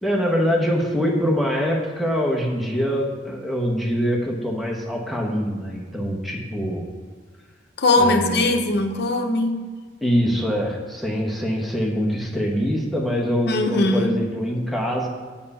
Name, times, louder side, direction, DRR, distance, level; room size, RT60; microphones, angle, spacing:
voice 1, 0.0-6.8 7.9-8.6 10.0-15.1, equal, ahead, -1 dB, 1.1 m, -24 dB
voice 2, 7.8-9.7 13.5-14.1, left 2 dB, 60° left, 5 dB, 0.9 m, -20 dB
7.6 x 7.2 x 5.5 m, 1.5 s
head